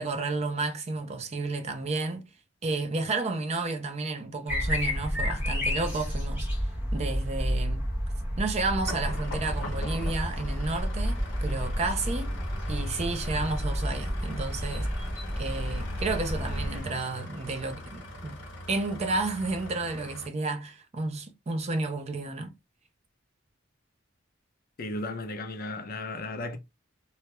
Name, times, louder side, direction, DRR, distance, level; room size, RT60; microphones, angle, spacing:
voice 1, 0.0-2.2 2.6-6.5 6.9-7.9 8.4-12.4 12.7-14.9 15.4-18.4 18.7-22.5, right 3 dB, 35° right, 0.4 m, -31 dB
sound 1, 4.5-16.8, equal, 5° right, 0.8 m, -31 dB
sound 2, 8.8-20.3, left 1 dB, 65° left, 0.9 m, -41 dB
voice 2, 24.8-26.6, left 2 dB, 50° left, 0.5 m, -35 dB
2.2 x 2.0 x 2.9 m
head